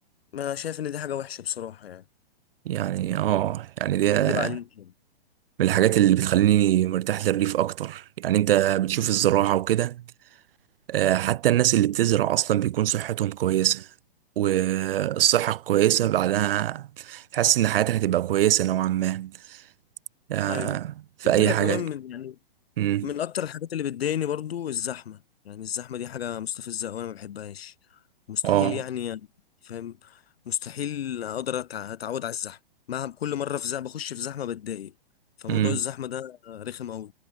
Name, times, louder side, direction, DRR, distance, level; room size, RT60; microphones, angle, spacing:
voice 1, 0.3-2.0 4.1-4.9 20.5-20.8 21.2-22.4 23.0-27.7 28.3-29.3 29.6-32.6 32.9-34.9 35.4-37.1, left 10 dB, 85° left, 0.9 m, -32 dB
voice 2, 2.7-4.5 5.6-10.0 10.9-13.9 14.4-19.6 20.3-20.9 21.2-21.8 22.8-23.1 28.4-28.8 35.5-35.8, right 12 dB, 70° right, 0.5 m, -23 dB
hypercardioid pair, 155°, 30 cm